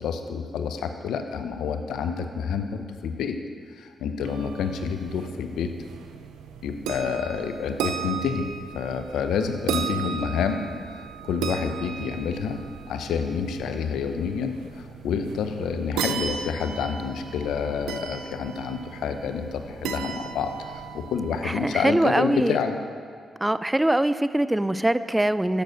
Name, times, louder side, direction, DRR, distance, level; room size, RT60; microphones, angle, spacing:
voice 1, 0.0-3.4 3.8-5.7 6.6-8.5 8.7-10.6 10.9-12.6 12.9-22.7, left 6 dB, 80° left, 7 dB, 0.6 m, -28 dB
sound 1, 4.2-21.7, right 7 dB, 90° right, 0.5 m, -36 dB
voice 2, 21.4-22.6 23.4-25.6, right 1 dB, 15° right, 14 dB, 0.4 m, -23 dB
6.6 x 6.6 x 6.2 m, 2.1 s
supercardioid pair, 50°, 0 cm